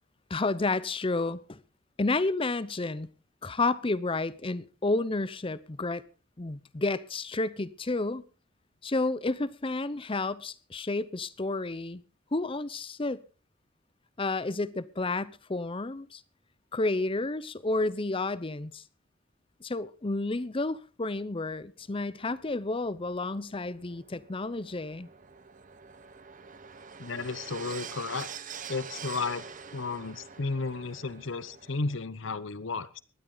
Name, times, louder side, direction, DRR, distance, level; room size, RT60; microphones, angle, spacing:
voice 1, 0.3-1.6 2.0-3.1 3.4-6.0 6.4-8.2 8.8-12.0 12.3-13.2 14.2-16.2 16.7-18.8 19.6-25.1, left 2 dB, 25° left, 0.7 m, -31 dB
sound 1, 21.8-32.0, right 6 dB, 40° right, 1.1 m, -46 dB
voice 2, 27.0-28.3 28.7-29.5 29.7-33.0, left 4 dB, 75° left, 0.9 m, -33 dB
19.0 x 12.5 x 3.9 m
head